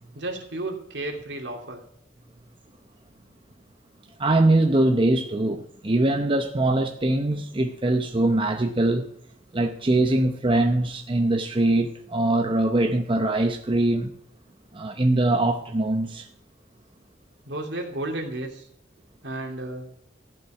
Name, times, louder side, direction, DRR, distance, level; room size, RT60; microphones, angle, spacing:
voice 1, 0.1-1.8 17.5-18.7 19.2-19.9, right 2 dB, 75° right, 2.5 m, -32 dB
voice 2, 4.2-9.1 9.5-14.1 14.7-16.3, right 2 dB, 30° right, 0.8 m, -22 dB
15.0 x 5.5 x 9.0 m
head